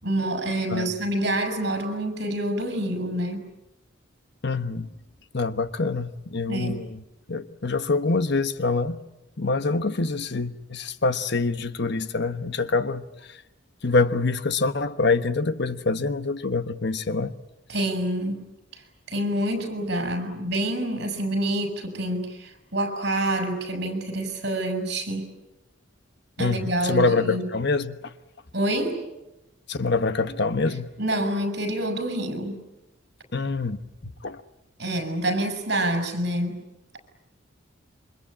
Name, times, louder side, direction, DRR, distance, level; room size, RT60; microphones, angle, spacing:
voice 1, 0.0-3.5 6.5-6.8 17.7-18.4 18.7-18.8 19.1-25.3 26.4-27.5 28.5-29.0 31.0-32.6 34.8-36.6, right 1 dB, 55° right, 6.3 m, -27 dB
voice 2, 4.4-4.9 5.3-7.0 7.3-9.0 9.4-13.4 13.8-17.3 26.4-28.1 29.7-30.9 33.3-34.4, left 3 dB, 60° left, 1.2 m, -25 dB
28.0 x 24.5 x 8.7 m
head